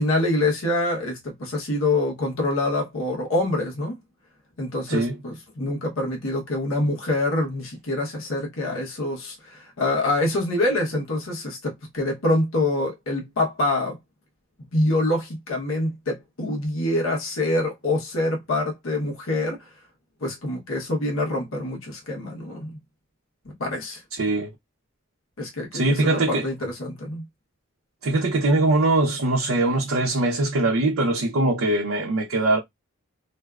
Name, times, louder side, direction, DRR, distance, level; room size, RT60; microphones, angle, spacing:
voice 1, 0.0-4.0 4.6-14.0 14.7-19.7 20.2-22.7 23.6-24.0 25.4-27.2, left 2 dB, 75° left, 0.9 m, -25 dB
voice 2, 24.2-24.5 25.7-26.5 28.0-32.6, right 2 dB, 85° right, 0.6 m, -22 dB
2.5 x 2.3 x 2.2 m
head